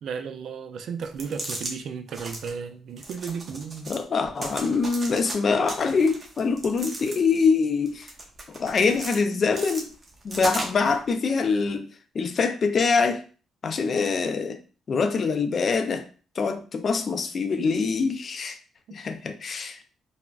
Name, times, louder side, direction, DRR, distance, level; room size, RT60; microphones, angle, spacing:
voice 1, 0.0-4.0, right 6 dB, 70° right, 0.3 m, -34 dB
sound 1, 1.0-1.7 2.1-2.5 3.0-4.0 4.4-5.4 5.7-7.4 7.9-9.2 9.5-11.0, right 2 dB, 35° right, 0.8 m, -36 dB
voice 2, 3.9-8.1 8.6-9.9 10.2-11.9 12.1-13.2 13.6-14.6 14.9-16.0 16.4-18.6 18.9-19.8, left 4 dB, 50° left, 0.4 m, -24 dB
3.4 x 2.0 x 2.3 m
cardioid pair, 90°, 0 cm